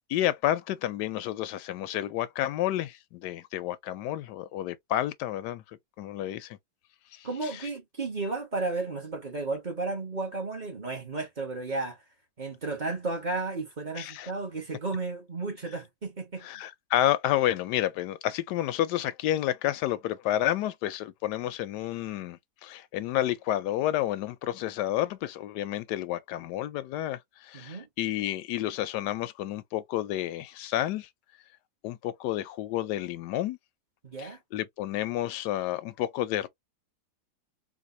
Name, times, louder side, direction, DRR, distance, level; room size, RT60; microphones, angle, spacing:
voice 1, 0.1-5.6 6.0-6.6 7.1-7.3 14.0-14.3 16.4-31.1 31.8-33.6 34.2-36.5, left 13 dB, 90° left, 1.2 m, -30 dB
voice 2, 7.2-12.0 12.4-16.5 27.5-27.9 34.0-34.4, right 3 dB, 30° right, 1.1 m, -33 dB
4.1 x 2.6 x 2.6 m
omnidirectional pair, 1.7 m